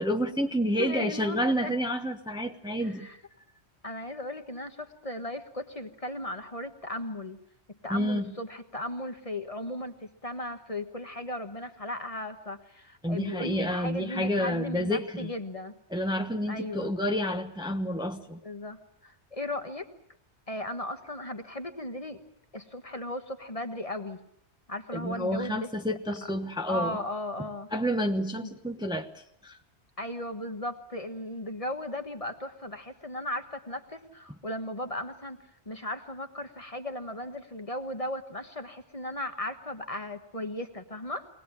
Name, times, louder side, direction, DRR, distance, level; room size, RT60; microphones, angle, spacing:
voice 1, 0.0-3.1 7.9-8.2 13.0-15.3 15.9-18.4 24.9-27.0 27.7-29.1 29.4-29.6, equal, 5° right, 4 dB, 1.1 m, -29 dB
voice 2, 0.8-1.7 2.8-3.2 3.8-7.4 7.8-15.7 16.5-16.9 18.4-19.9 20.5-22.2 22.5-24.2 24.7-26.0 26.7-27.7 28.4-28.5 30.0-35.4 35.6-41.3, left 1 dB, 30° left, 7 dB, 1.5 m, -36 dB
23.0 x 18.5 x 9.0 m, 0.71 s
omnidirectional pair, 1.1 m